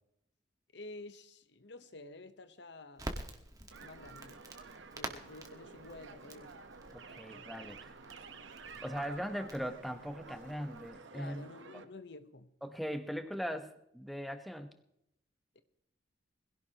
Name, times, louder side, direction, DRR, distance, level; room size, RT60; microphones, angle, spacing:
voice 1, 0.7-3.2 3.8-4.4 5.0-6.6 11.1-12.5 15.5-15.6, left 2 dB, 65° left, 1.0 m, -50 dB
Crackle, 3.0-10.9, right 1 dB, 20° right, 1.6 m, -48 dB
sound 1, 3.7-11.8, right 4 dB, 85° right, 1.1 m, -51 dB
voice 2, 6.9-7.8 8.8-11.4 12.6-14.7, equal, ahead, 1.0 m, -39 dB
22.0 x 16.5 x 3.0 m
head